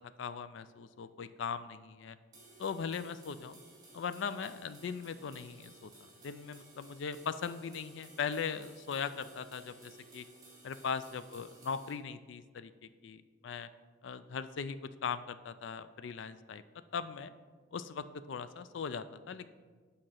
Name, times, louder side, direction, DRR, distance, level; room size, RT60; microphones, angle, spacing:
voice 1, 0.2-2.2 2.6-3.6 3.9-5.9 6.2-10.3 10.6-12.7 13.0-13.7 14.0-16.6 16.9-17.3 17.7-19.5, left 6 dB, 65° left, 13 dB, 0.4 m, -39 dB
sound 1, 2.3-11.9, right 2 dB, 20° right, 1.9 m, -57 dB
7.6 x 5.0 x 5.8 m, 1.5 s
head